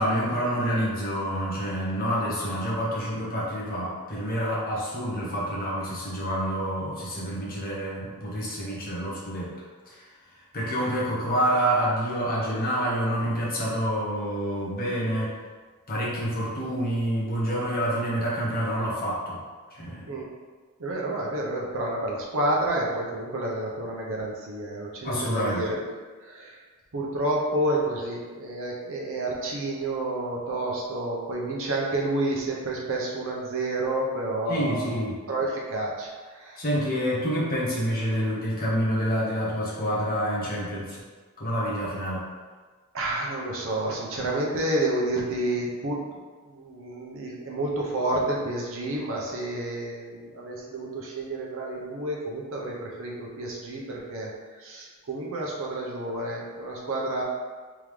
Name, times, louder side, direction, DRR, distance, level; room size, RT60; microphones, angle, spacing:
voice 1, 0.0-9.5 9.9-10.1 10.5-15.3 15.9-19.4 19.7-20.1 25.0-25.6 34.5-35.2 36.6-41.0 41.4-42.2, equal, 40° left, -6 dB, 1.1 m, -27 dB
voice 2, 20.8-25.8 26.2-26.6 26.9-35.0 35.3-36.6 42.9-46.1 46.5-54.3 54.6-57.2, right 1 dB, 60° right, -3 dB, 0.8 m, -29 dB
3.6 x 3.5 x 3.2 m, 1.4 s
head